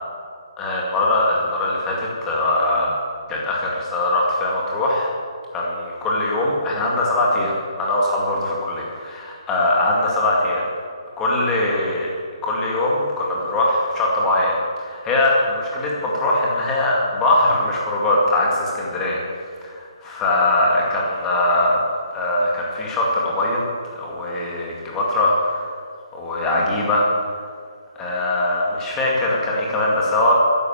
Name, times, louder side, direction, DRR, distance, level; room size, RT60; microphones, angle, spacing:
voice 1, 0.6-2.9 3.3-5.1 5.5-10.7 11.2-12.1 12.4-19.2 19.6-21.8 22.1-23.6 24.0-25.6 26.1-27.1 28.0-30.3, left 2 dB, 10° left, -3 dB, 2.1 m, -21 dB
13.5 x 11.0 x 7.2 m, 2.2 s
hypercardioid pair, 170°, 3 cm